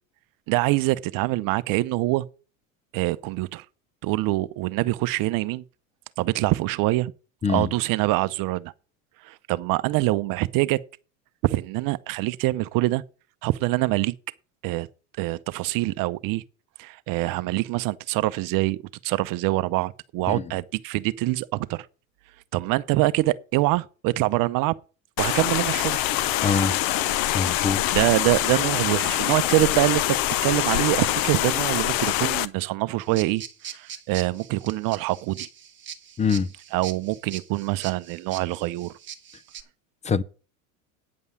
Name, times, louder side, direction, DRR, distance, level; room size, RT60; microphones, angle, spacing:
voice 1, 0.5-2.3 2.9-3.6 4.0-5.6 6.2-7.1 7.5-8.7 9.2-10.8 11.4-13.0 13.4-14.1 14.6-14.9 15.2-16.4 16.8-21.9 22.5-24.7 25.2-26.0 27.9-30.2 30.4-35.5 36.7-38.9, right 19 dB, 55° right, 0.8 m, -25 dB
sound 1, 25.2-32.5, left 14 dB, 55° left, 0.8 m, -24 dB
voice 2, 26.4-26.8 27.3-27.8 36.2-36.5 40.0-40.2, left 5 dB, 15° left, 0.5 m, -23 dB
sound 2, 33.0-39.6, right 8 dB, 30° right, 1.4 m, -41 dB
9.5 x 5.4 x 8.3 m
supercardioid pair, 115°, 41 cm